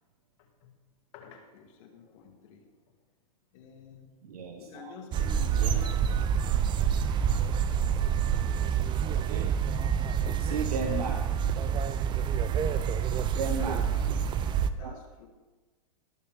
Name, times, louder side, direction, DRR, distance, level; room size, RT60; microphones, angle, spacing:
voice 1, 1.1-2.7 3.5-4.1 4.6-6.4 11.7-12.0 13.4-14.3 14.7-15.3, left 5 dB, 60° left, 1 dB, 2.6 m, -49 dB
voice 2, 4.2-5.0 5.6-5.9 9.0-9.6 10.4-11.4 13.4-13.9 14.8-15.0, right 4 dB, 85° right, 4 dB, 1.1 m, -35 dB
sound 1, 5.1-14.7, right 8 dB, 25° right, 0.5 m, -27 dB
18.0 x 6.8 x 3.7 m, 1.2 s
hypercardioid pair, 125°, 19 cm